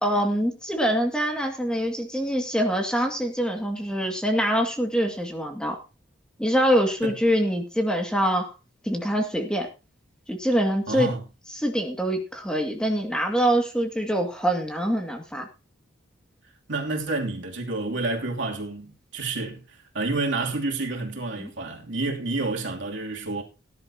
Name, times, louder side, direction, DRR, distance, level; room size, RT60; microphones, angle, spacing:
voice 1, 0.0-5.8 6.4-8.5 8.8-9.7 10.3-11.1 11.5-15.5 21.4-21.5, equal, 5° left, 2.1 m, -24 dB
voice 2, 10.9-11.2 16.7-23.4, right 3 dB, 70° right, 2.9 m, -29 dB
18.5 x 11.0 x 2.9 m
head